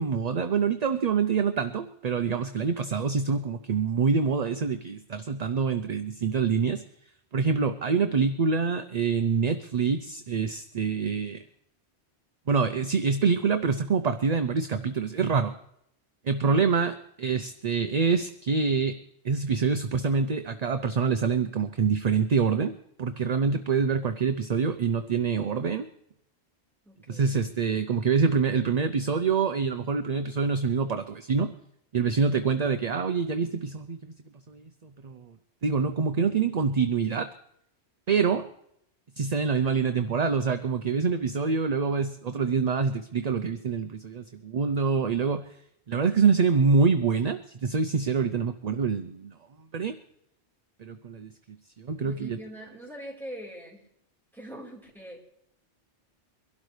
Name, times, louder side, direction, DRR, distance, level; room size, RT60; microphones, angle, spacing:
voice 1, 0.0-6.8 7.3-11.4 12.5-15.5 16.2-19.0 19.2-25.9 27.1-31.5 31.9-34.1 34.5-35.3 35.6-37.3 38.1-38.5 39.2-45.4 45.9-49.3 49.7-50.0 50.8-52.4, right 5 dB, 45° right, 9 dB, 0.6 m, -26 dB
voice 2, 26.8-27.5 39.6-39.7 52.0-53.9 54.3-55.2, equal, ahead, -4 dB, 4.1 m, -43 dB
23.5 x 12.5 x 3.3 m, 0.75 s
omnidirectional pair, 1.1 m